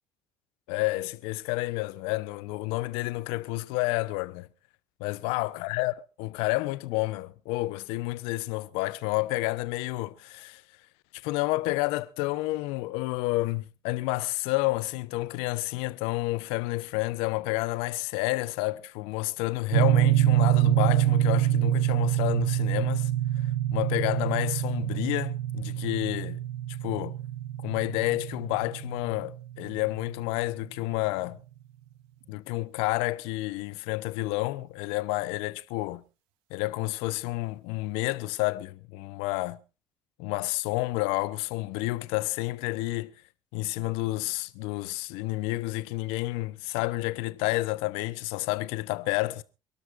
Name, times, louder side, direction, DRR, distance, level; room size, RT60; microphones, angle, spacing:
voice 1, 0.7-4.5 5.0-5.9 6.2-10.6 11.2-23.1 23.7-26.4 26.8-27.2 27.6-31.4 32.3-36.0 36.5-39.6 40.2-43.1 43.5-49.4, left 20 dB, 75° left, 0.9 m, -30 dB
sound 1, 19.7-29.9, right 13 dB, 75° right, 0.8 m, -26 dB
27.5 x 12.5 x 2.6 m
hypercardioid pair, 60°, 10 cm